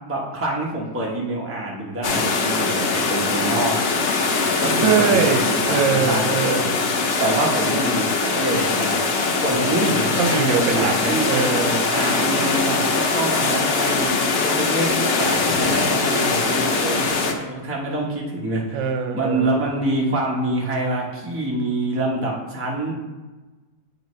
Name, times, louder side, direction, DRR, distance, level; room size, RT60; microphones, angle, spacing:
voice 1, 0.0-6.6 7.2-9.1 9.3-11.3 11.9-22.9, right 2 dB, 10° right, -3 dB, 0.8 m, -26 dB
sound 1, 2.0-17.3, left 4 dB, 70° left, 0.5 m, -22 dB
voice 2, 4.8-6.8 10.2-11.9 18.7-19.6, right 6 dB, 85° right, 5 dB, 1.5 m, -22 dB
8.6 x 5.2 x 3.1 m, 1.2 s
omnidirectional pair, 2.0 m